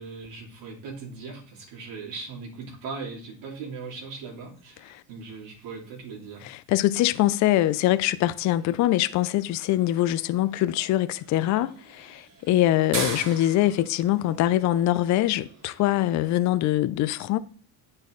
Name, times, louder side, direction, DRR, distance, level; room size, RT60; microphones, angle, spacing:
voice 1, 0.0-6.5, right 4 dB, 60° right, 2.8 m, -39 dB
sound 1, 4.5-16.4, right 3 dB, 35° right, 2.4 m, -42 dB
voice 2, 6.4-17.4, left 14 dB, 40° left, 0.4 m, -23 dB
9.1 x 4.8 x 3.1 m
supercardioid pair, 110°, 49 cm